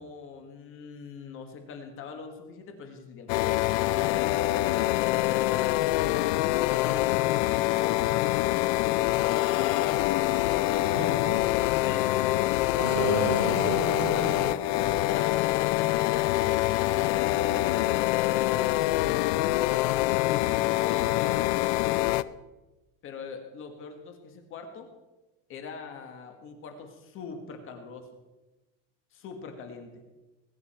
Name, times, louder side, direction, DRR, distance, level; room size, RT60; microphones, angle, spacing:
voice 1, 0.0-3.6 5.0-10.0 10.6-11.2 11.8-12.3 14.0-16.5 17.3-19.7 20.3-21.5 23.0-24.9 25.5-28.1 29.1-29.9, left 5 dB, 35° left, 5 dB, 1.7 m, -42 dB
sound 1, 3.3-22.2, left 16 dB, 55° left, 0.5 m, -25 dB
voice 2, 10.9-11.3 12.8-14.4, right 1 dB, 70° right, -2 dB, 6.3 m, -30 dB
20.5 x 9.6 x 4.4 m, 1.1 s
cardioid pair, 170°, 38 cm